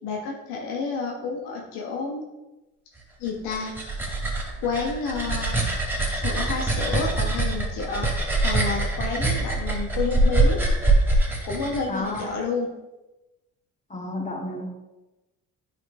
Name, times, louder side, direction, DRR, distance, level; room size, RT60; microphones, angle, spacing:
voice 1, 0.0-2.2 3.2-3.7 4.6-5.6 6.1-10.6 11.4-12.7, left 4 dB, 80° left, 0 dB, 1.4 m, -30 dB
sound 1, 3.3-12.2, right 2 dB, 5° right, 2.6 m, -24 dB
voice 2, 11.9-12.4 13.9-14.7, left 1 dB, 20° left, -1 dB, 2.1 m, -31 dB
9.4 x 5.6 x 3.3 m, 1.0 s
hypercardioid pair, 60°, 39 cm